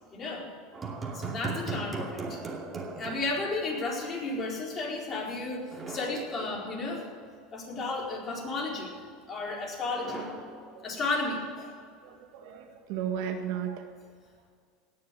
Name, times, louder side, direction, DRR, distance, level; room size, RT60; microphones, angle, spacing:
voice 1, 0.1-0.5 1.1-2.4 3.0-7.1 7.5-8.9 9.3-10.2 10.8-11.7, left 3 dB, 35° left, -2 dB, 4.3 m, -33 dB
sound 1, 0.7-4.1 4.4-4.5 5.7-7.1 10.0-11.5, right 3 dB, 25° right, 2.5 m, -39 dB
voice 2, 12.0-13.8, right 8 dB, 65° right, 5 dB, 1.6 m, -35 dB
18.0 x 6.7 x 9.4 m, 2.1 s
supercardioid pair, 105°, 0 cm